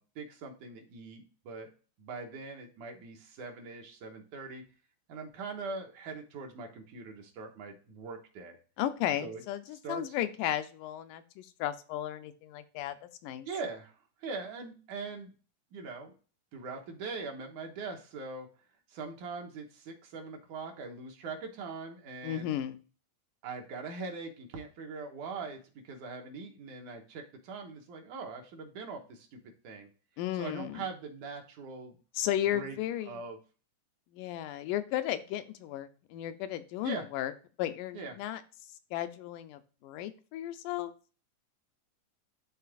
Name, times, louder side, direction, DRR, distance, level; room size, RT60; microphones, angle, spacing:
voice 1, 0.0-1.7 2.0-4.6 5.1-8.6 9.2-9.4 9.8-10.0 13.5-15.3 15.7-16.1 16.5-18.5 18.9-22.5 23.4-29.9 30.3-32.0 32.5-32.8 33.1-33.4 36.8-37.1 37.9-38.1, right 4 dB, 75° right, 2 dB, 2.6 m, -42 dB
voice 2, 8.8-13.0 13.2-13.5 22.2-22.8 30.2-30.8 32.2-33.2 34.1-37.3 37.6-38.4 38.9-40.9, left 12 dB, 85° left, 10 dB, 2.2 m, -34 dB
11.5 x 3.8 x 2.4 m, 0.37 s
omnidirectional pair, 3.6 m